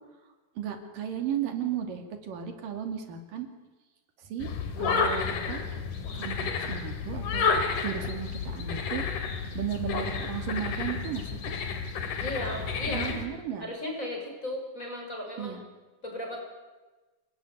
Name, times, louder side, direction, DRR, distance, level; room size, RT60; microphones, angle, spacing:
voice 1, 0.6-3.5 4.2-4.5 4.8-5.6 6.1-7.5 7.8-9.0 9.6-11.6 12.9-13.6 15.4-15.6, right 9 dB, 85° right, 5 dB, 4.2 m, -35 dB
sound 1, 4.4-13.3, left 5 dB, 70° left, 4.0 m, -31 dB
voice 2, 12.2-13.2 13.6-15.6 16.0-16.4, left 1 dB, 20° left, 1 dB, 6.7 m, -35 dB
27.5 x 20.0 x 9.6 m, 1.2 s
omnidirectional pair, 3.8 m